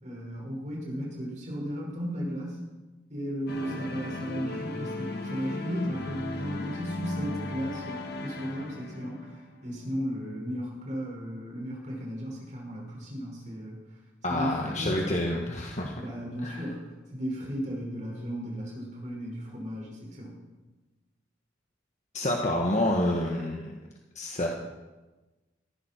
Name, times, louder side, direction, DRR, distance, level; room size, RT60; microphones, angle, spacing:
voice 1, 0.0-2.6 3.1-13.8 14.3-15.0 16.0-20.4, equal, 40° right, -2 dB, 5.6 m, -35 dB
sound 1, 3.5-9.7, left 2 dB, 55° left, 1.9 m, -36 dB
voice 2, 14.2-16.0 16.4-16.7 22.1-23.7 24.1-24.5, left 1 dB, 40° left, 0 dB, 1.5 m, -28 dB
17.0 x 15.0 x 4.6 m, 1.2 s
head